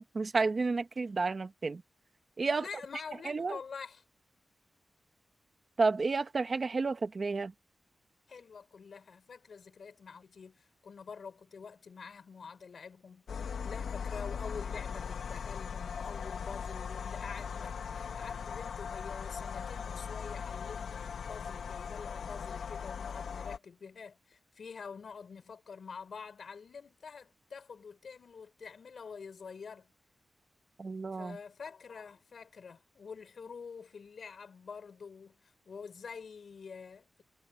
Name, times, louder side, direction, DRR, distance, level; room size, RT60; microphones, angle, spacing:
voice 1, 0.0-1.8 2.4-2.7 3.2-3.6 5.8-7.5 30.8-31.4, right 4 dB, 40° right, 1.1 m, -31 dB
voice 2, 2.6-4.0 8.3-13.3 13.6-29.9 31.1-37.2, left 5 dB, 60° left, 6.0 m, -47 dB
sound 1, 13.3-23.6, left 6 dB, 90° left, 1.5 m, -39 dB
wide cardioid pair, 140°, 0 cm